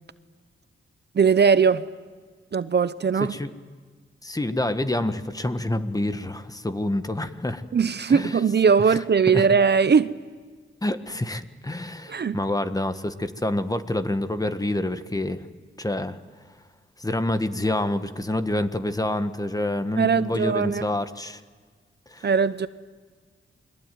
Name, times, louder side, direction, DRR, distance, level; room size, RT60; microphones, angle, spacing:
voice 1, 1.1-1.8 2.5-3.4 7.7-10.1 12.1-12.4 20.0-20.8 22.2-22.7, right 6 dB, 55° right, 0.8 m, -20 dB
voice 2, 4.2-7.6 8.1-8.4 8.9-9.0 9.3-9.5 10.8-15.5 15.8-16.2 17.0-21.4 22.1-22.3, left 1 dB, 15° left, 1.5 m, -27 dB
28.5 x 22.0 x 9.3 m
wide cardioid pair, 85°, 21 cm